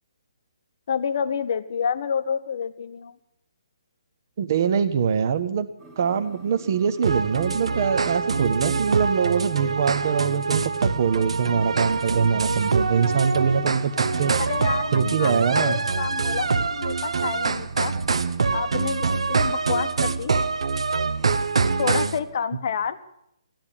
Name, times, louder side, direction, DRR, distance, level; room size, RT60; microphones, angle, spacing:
voice 1, 0.9-3.1 14.4-17.9 18.5-20.3 21.8-23.0, left 7 dB, 40° left, 12 dB, 0.8 m, -29 dB
voice 2, 4.4-5.7 6.0-13.9 14.2-14.3 14.9-15.8, right 7 dB, 35° right, 9 dB, 0.7 m, -23 dB
sound 1, 5.8-22.4, right 3 dB, 5° right, 1.2 m, -47 dB
sound 2, 7.0-22.2, right 4 dB, 75° right, 0.9 m, -24 dB
15.0 x 10.5 x 8.7 m, 0.78 s
hypercardioid pair, 175°, 3 cm